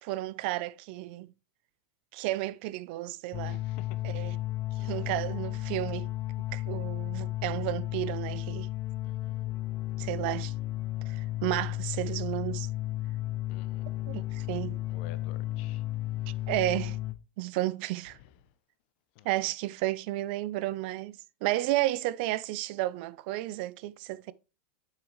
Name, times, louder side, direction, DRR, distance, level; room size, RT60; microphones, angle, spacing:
voice 1, 0.0-1.3 2.1-3.6 4.0-4.4 4.8-6.1 6.5-8.7 10.0-10.5 11.1-12.7 14.1-14.8 16.5-17.0 17.4-18.2 19.2-21.1 21.4-24.3, right 17 dB, 55° right, 0.5 m, -32 dB
sound 1, 3.3-17.1, left 16 dB, 30° left, 1.0 m, -34 dB
voice 2, 3.5-4.2 4.8-5.1 9.0-9.5 13.5-14.0 14.9-15.8 16.3-16.4 18.2-18.3 19.2-19.3, left 11 dB, 55° left, 0.9 m, -52 dB
7.5 x 6.1 x 3.1 m
supercardioid pair, 135°, 7 cm